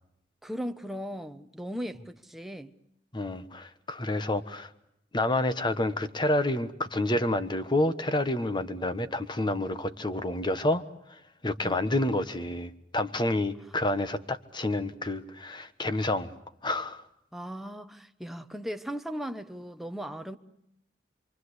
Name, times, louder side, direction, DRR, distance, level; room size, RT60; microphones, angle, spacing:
voice 1, 0.4-2.7 11.6-11.8 17.3-20.4, equal, ahead, 1.0 m, -37 dB
voice 2, 3.1-4.7 5.1-10.8 11.4-16.3 16.6-17.0, left 1 dB, 25° left, 1.3 m, -29 dB
28.0 x 23.5 x 8.1 m
head